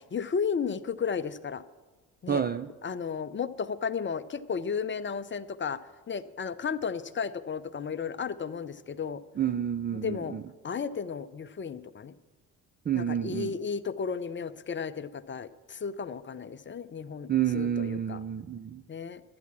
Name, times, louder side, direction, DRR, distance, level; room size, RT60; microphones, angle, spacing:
voice 1, 0.0-1.6 2.2-2.4 2.8-5.8 6.1-9.2 9.9-10.4 10.6-12.1 12.9-18.2 18.9-19.2, left 6 dB, 25° left, 0.6 m, -34 dB
voice 2, 2.3-2.7 9.4-10.4 12.9-13.5 17.3-18.8, right 9 dB, 25° right, 0.4 m, -29 dB
12.0 x 9.4 x 6.0 m
hypercardioid pair, 45°, 43 cm